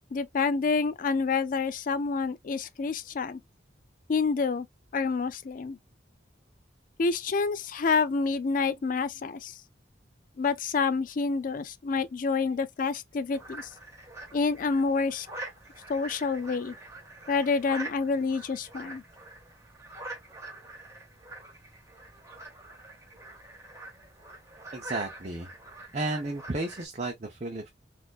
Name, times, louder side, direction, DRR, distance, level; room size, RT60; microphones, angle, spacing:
voice 1, 0.1-3.4 4.1-4.7 4.9-5.8 7.0-9.5 10.4-13.7 14.3-15.3 15.9-16.8 17.3-19.0, left 4 dB, 45° left, 0.4 m, -28 dB
sound 1, 13.3-26.9, right 2 dB, 15° right, 1.2 m, -45 dB
voice 2, 24.7-25.5 25.9-27.7, right 2 dB, 35° right, 0.6 m, -33 dB
4.1 x 2.5 x 2.3 m
head